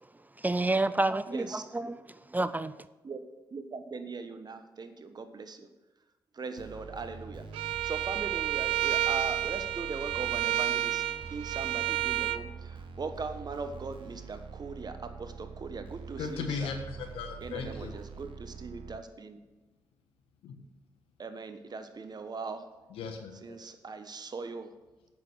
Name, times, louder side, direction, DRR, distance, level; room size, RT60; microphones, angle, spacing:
voice 1, 0.4-2.0 2.3-2.8, right 2 dB, 20° right, 15 dB, 0.5 m, -29 dB
voice 2, 1.3-1.9 3.0-3.2 3.5-5.7 6.3-11.0 11.3-16.7 17.4-19.4 21.2-22.6 23.4-24.7, right 4 dB, 45° right, 8 dB, 1.2 m, -40 dB
sound 1, 6.6-19.0, right 5 dB, 65° right, 1.2 m, -45 dB
Bowed string instrument, 7.5-12.4, right 13 dB, 85° right, 0.4 m, -30 dB
voice 3, 16.2-18.0 20.4-20.6 22.9-23.6, left 5 dB, 85° left, 4 dB, 1.4 m, -37 dB
8.5 x 7.3 x 6.4 m, 1.1 s
supercardioid pair, 50°, 9 cm